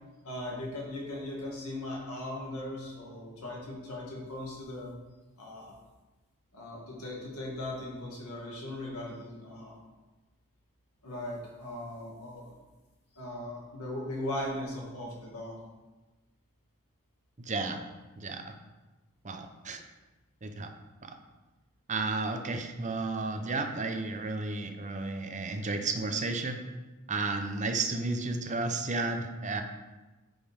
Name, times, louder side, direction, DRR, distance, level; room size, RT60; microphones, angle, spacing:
voice 1, 0.2-4.9 5.4-5.7 6.5-9.8 11.0-12.6 13.2-15.6, left 1 dB, 75° left, -3 dB, 2.0 m, -38 dB
voice 2, 17.4-17.8 18.2-18.5 19.2-19.8 20.4-20.7 21.0-21.1 21.9-26.6 27.1-29.6, right 3 dB, 35° right, 5 dB, 0.7 m, -32 dB
8.9 x 5.3 x 3.6 m, 1.2 s
head